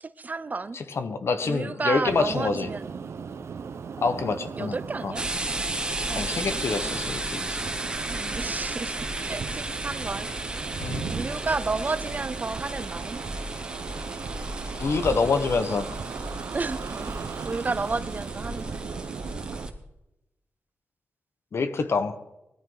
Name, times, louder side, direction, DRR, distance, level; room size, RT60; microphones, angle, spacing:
voice 1, 0.0-0.8 1.4-2.9 4.6-5.3 6.1-7.1 8.1-10.6 11.1-13.2 16.5-17.1 17.4-18.8, right 3 dB, 35° right, 15 dB, 0.6 m, -32 dB
voice 2, 0.7-2.7 4.0-4.8 5.0-5.1 6.1-7.6 10.8-11.1 14.8-15.9 21.5-22.2, left 4 dB, 70° left, 9 dB, 1.3 m, -26 dB
sound 1, 2.0-19.7, right 6 dB, 85° right, 0.9 m, -37 dB
sound 2, 5.2-19.7, right 1 dB, 20° right, 1.7 m, -34 dB
19.0 x 13.5 x 4.0 m, 0.94 s
wide cardioid pair, 105°, 5 cm